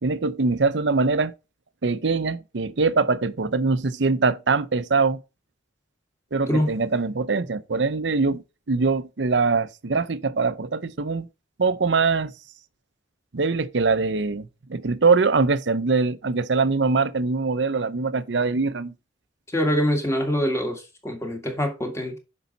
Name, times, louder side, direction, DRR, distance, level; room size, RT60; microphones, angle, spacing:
voice 1, 0.0-1.3 1.8-5.2 6.3-11.3 11.6-12.3 13.3-18.9, right 4 dB, 80° right, 0.7 m, -23 dB
voice 2, 6.5-6.8 19.5-22.2, equal, 15° left, 1.7 m, -24 dB
8.1 x 5.6 x 4.1 m
head